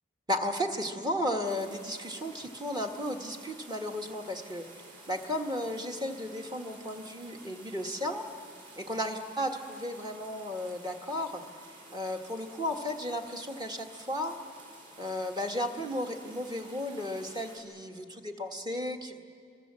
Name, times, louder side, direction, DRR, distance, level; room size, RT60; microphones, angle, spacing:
voice 1, 0.3-4.6 5.1-8.3 8.8-11.4 11.9-14.3 15.0-19.2, left 1 dB, 20° right, 3 dB, 1.6 m, -34 dB
sound 1, 1.4-17.6, right 2 dB, 40° right, 4.9 m, -52 dB
27.0 x 22.0 x 7.5 m, 2.4 s
head